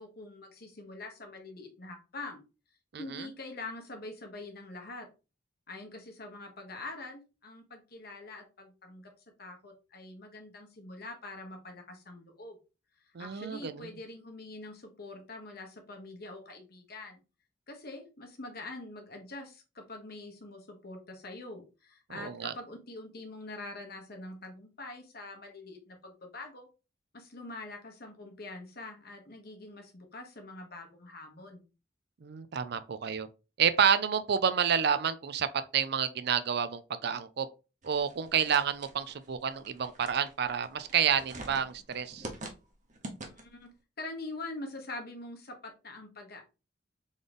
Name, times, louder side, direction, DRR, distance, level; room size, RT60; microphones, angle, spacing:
voice 1, 0.0-2.4 3.0-5.1 5.7-9.1 9.4-12.6 13.0-17.2 17.7-26.7 27.1-31.6 43.2-46.4, left 2 dB, 55° left, 1.3 m, -44 dB
voice 2, 2.9-3.3 13.1-13.9 22.1-22.5 32.2-33.3 33.6-35.5 35.7-37.5 37.8-42.3, right 7 dB, 60° right, 0.5 m, -29 dB
sound 1, 37.8-43.7, right 2 dB, 45° right, 1.0 m, -46 dB
3.9 x 3.8 x 3.4 m
head